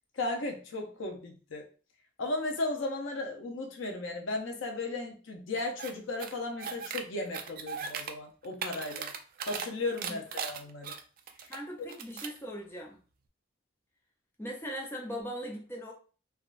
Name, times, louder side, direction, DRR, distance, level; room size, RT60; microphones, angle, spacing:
voice 1, 0.2-1.6 2.2-9.1 9.4-10.9, left 2 dB, 90° left, 3 dB, 0.7 m, -35 dB
sound 1, 5.8-5.9 6.2-7.0 7.3-8.1 8.4-9.7 10.0-11.6 11.9-12.4, right 6 dB, 45° right, 0.3 m, -38 dB
voice 2, 11.5-13.0 14.4-15.9, equal, 10° left, -1 dB, 0.5 m, -39 dB
3.6 x 2.3 x 2.4 m, 0.38 s
head